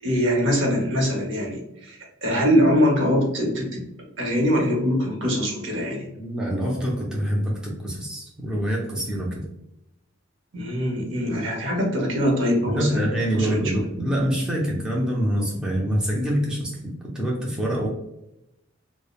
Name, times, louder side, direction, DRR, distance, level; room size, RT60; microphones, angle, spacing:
voice 1, 0.0-3.8 4.2-6.1 10.5-13.1 13.3-13.8, equal, 65° right, 0 dB, 0.8 m, -23 dB
voice 2, 6.2-9.4 12.7-16.8 17.0-17.9, equal, 5° right, -4 dB, 0.4 m, -25 dB
3.0 x 2.0 x 2.3 m, 0.87 s
head